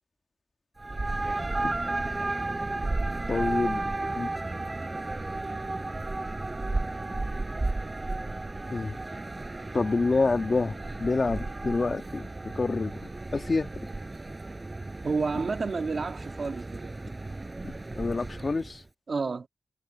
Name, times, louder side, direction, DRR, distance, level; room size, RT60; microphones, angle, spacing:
sound 1, 0.8-18.7, right 2 dB, 30° right, 6.3 m, -33 dB
voice 1, 3.3-3.9 4.2-4.3 8.7-9.0 9.7-12.9 13.3-13.7 17.6-18.8, left 3 dB, 45° left, 1.5 m, -27 dB
voice 2, 15.0-16.9 19.1-19.5, right 4 dB, 60° right, 1.8 m, -30 dB
wide cardioid pair, 115°, 0 cm